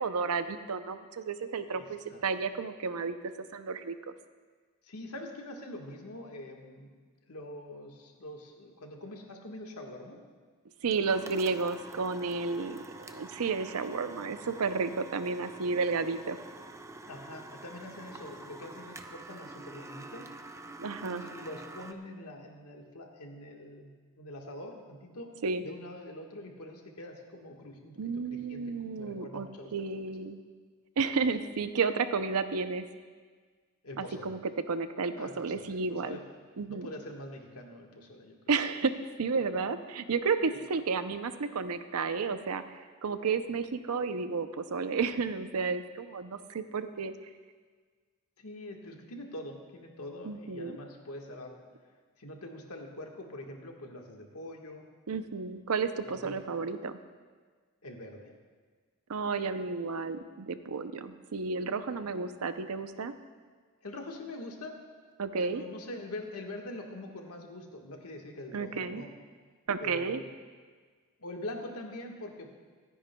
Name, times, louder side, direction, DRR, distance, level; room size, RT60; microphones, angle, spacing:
voice 1, 0.0-3.2 3.5-3.9 10.8-16.4 20.8-21.2 25.4-25.6 28.0-30.4 31.0-32.8 34.0-34.4 34.7-36.2 36.6-36.9 38.5-38.9 39.2-47.1 50.2-50.8 55.1-56.9 59.1-63.1 65.2-65.6 68.5-69.0 69.7-70.2, right 4 dB, 75° right, 10 dB, 0.6 m, -32 dB
voice 2, 1.7-2.2 4.8-6.9 7.3-10.2 17.0-20.3 21.1-25.3 25.6-28.0 28.3-29.7 33.8-34.3 35.2-36.3 36.7-38.3 48.4-51.6 52.2-54.8 56.0-56.4 57.8-58.3 63.8-64.8 65.2-69.1 69.8-70.3 71.2-72.5, left 1 dB, 75° left, 1 dB, 1.5 m, -44 dB
sound 1, 10.9-21.9, right 2 dB, 15° right, 0.5 m, -47 dB
25.0 x 10.0 x 2.3 m, 1.5 s
head